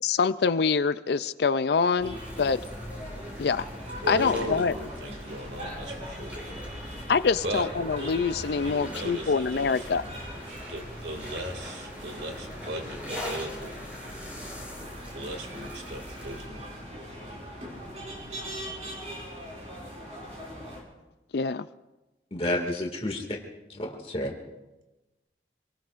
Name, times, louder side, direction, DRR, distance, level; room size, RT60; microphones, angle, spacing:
voice 1, 0.0-2.6 3.4-3.7 4.1-4.7 7.1-10.0 21.3-21.7, left 5 dB, 65° left, 14 dB, 0.4 m, -25 dB
sound 1, 2.0-20.8, equal, 35° right, 4.5 m, -40 dB
sound 2, 2.1-16.5, left 1 dB, 10° right, 4.4 m, -44 dB
voice 2, 4.0-6.3 7.4-7.7 8.6-9.8 10.7-13.7 15.1-16.7, right 1 dB, 75° right, 3 dB, 2.5 m, -37 dB
voice 3, 22.3-23.4 23.7-24.3, left 1 dB, 30° left, 2 dB, 2.1 m, -30 dB
26.5 x 19.0 x 2.5 m, 1.1 s
head